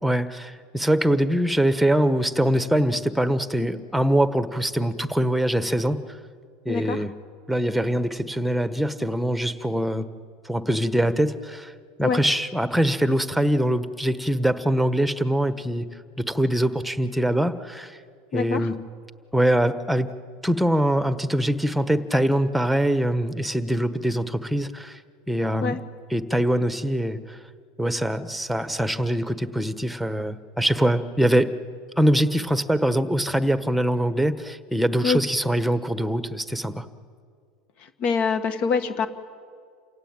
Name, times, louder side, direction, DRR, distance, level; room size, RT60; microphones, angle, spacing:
voice 1, 0.0-6.0 6.6-7.1 7.5-10.1 10.4-11.7 12.0-15.9 16.2-18.0 18.3-18.7 19.3-20.1 20.4-25.0 25.3-25.8 26.1-27.4 27.8-31.5 32.0-36.8, right 1 dB, ahead, 12 dB, 1.3 m, -23 dB
voice 2, 6.7-7.0 12.0-12.2 18.3-18.7 25.6-25.8 35.0-35.2 38.0-39.1, left 5 dB, 50° left, 10 dB, 1.7 m, -24 dB
28.5 x 17.5 x 9.0 m, 2.1 s
supercardioid pair, 110°, 2 cm